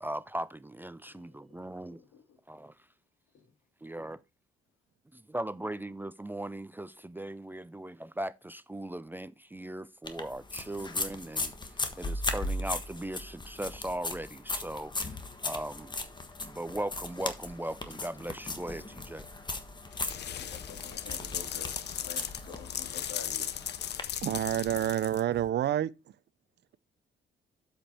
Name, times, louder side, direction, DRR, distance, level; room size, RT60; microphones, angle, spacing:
voice 1, 0.0-2.0 2.5-2.7 3.8-4.2 5.3-15.2 15.4-15.9 16.4-19.2, right 1 dB, 10° right, 0.4 m, -38 dB
voice 2, 1.1-1.5 1.9-2.4 3.3-3.5 20.4-23.5, left 6 dB, 80° left, 2.7 m, -49 dB
sound 1, 10.0-24.0, left 2 dB, 20° left, 1.4 m, -38 dB
sound 2, 19.9-25.5, left 10 dB, 55° left, 0.7 m, -37 dB
voice 3, 24.2-25.9, right 12 dB, 60° right, 0.5 m, -28 dB
7.8 x 5.2 x 4.4 m
cardioid pair, 90°, 20 cm